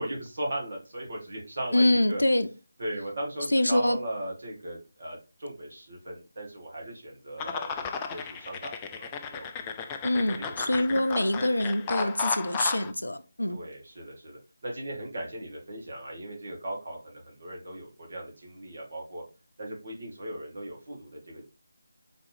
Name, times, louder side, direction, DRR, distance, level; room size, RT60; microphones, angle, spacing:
voice 1, 0.0-2.2 2.8-10.3 10.6-10.9 11.8-12.1 13.5-19.2 19.6-21.4, right 1 dB, 45° right, 1.9 m, -38 dB
voice 2, 1.7-2.5 3.5-4.0 10.0-13.6, left 1 dB, 70° left, 0.6 m, -25 dB
sound 1, 7.4-12.9, left 6 dB, 15° left, 0.3 m, -34 dB
4.5 x 3.5 x 3.4 m
figure-of-eight pair, 160°, 0 cm